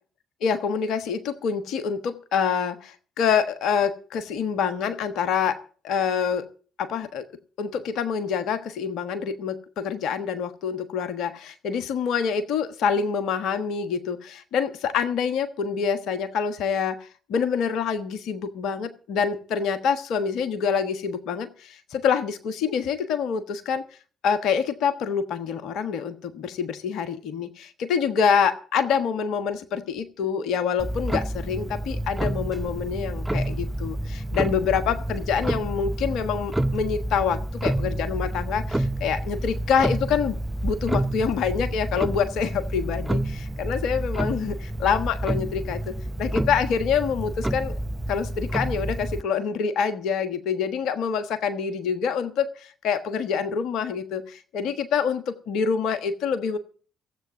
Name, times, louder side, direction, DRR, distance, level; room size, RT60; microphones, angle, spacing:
voice 1, 0.4-5.6 5.8-6.5 6.8-7.3 7.6-23.8 24.2-40.4 40.6-47.7 48.1-56.6, left 6 dB, 60° left, 10 dB, 1.3 m, -26 dB
Clock, 30.8-49.2, right 1 dB, 10° right, 0.8 m, -29 dB
16.5 x 8.0 x 7.3 m, 0.41 s
figure-of-eight pair, 45°, 0 cm